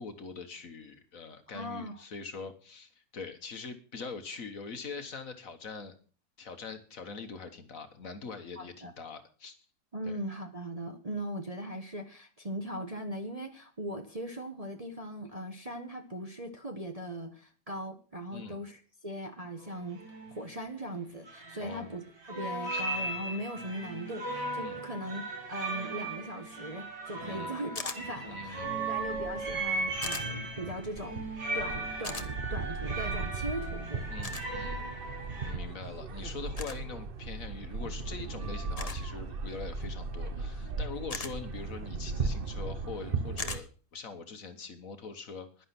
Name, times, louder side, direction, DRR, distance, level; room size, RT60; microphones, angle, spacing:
voice 1, 0.0-5.9 6.4-9.6 10.0-10.2 18.3-18.6 21.6-21.9 22.7-22.8 24.6-24.8 27.2-27.5 28.2-29.0 30.1-30.2 34.1-34.9 35.4-45.7, left 4 dB, 50° left, 8 dB, 1.6 m, -43 dB
voice 2, 1.5-2.0 8.6-8.9 9.9-20.0 20.3-31.2 31.5-34.1, right 1 dB, 25° right, 5 dB, 1.1 m, -39 dB
sound 1, 19.6-19.7 20.0-20.4 21.3-22.0 22.2-35.5, right 2 dB, 70° right, 3.6 m, -37 dB
sound 2, 27.8-28.0 30.0-30.3 32.0-32.3 34.2-34.5 36.6-36.8 38.8-39.0 41.1-41.3 43.4-43.6, left 4 dB, 25° left, 0.9 m, -37 dB
sound 3, 28.0-43.6, right 4 dB, 40° right, 0.9 m, -38 dB
11.0 x 11.0 x 5.9 m, 0.39 s
omnidirectional pair, 1.9 m